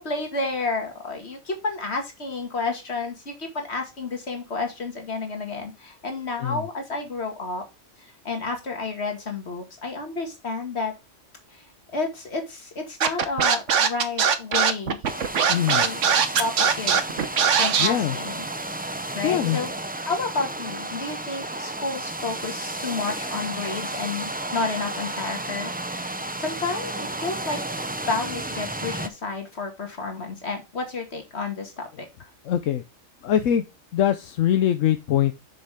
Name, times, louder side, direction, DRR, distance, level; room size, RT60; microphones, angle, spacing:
voice 1, 0.0-7.6 8.0-10.9 11.5-11.6 11.9-15.1 15.7-17.0 17.5-18.5 19.1-19.7 20.1-26.0 26.4-27.6 28.1-32.1, left 3 dB, 55° left, 4 dB, 2.4 m, -31 dB
Scratching (performance technique), 13.0-17.9, right 7 dB, 70° right, 1.3 m, -20 dB
sound 1, 15.0-29.1, right 2 dB, 10° right, 0.4 m, -32 dB
voice 2, 15.5-15.8 17.8-18.2 19.2-19.6 32.4-32.8 33.2-33.6 33.9-35.3, left 10 dB, 80° left, 9 dB, 1.1 m, -22 dB
6.9 x 6.8 x 3.6 m, 0.25 s
omnidirectional pair, 1.3 m